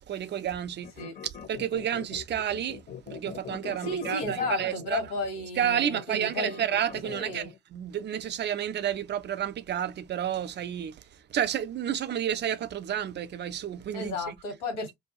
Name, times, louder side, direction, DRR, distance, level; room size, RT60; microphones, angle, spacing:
voice 1, 0.1-0.9 1.5-2.8 3.1-5.0 5.6-11.0 11.3-14.3, right 10 dB, 30° right, 0.5 m, -30 dB
sound 1, 0.8-7.6, left 7 dB, 25° left, 0.7 m, -42 dB
voice 2, 3.8-6.6 7.0-7.5 13.9-14.9, left 3 dB, 70° left, 1.5 m, -33 dB
2.7 x 2.3 x 2.8 m
figure-of-eight pair, 60°, 36 cm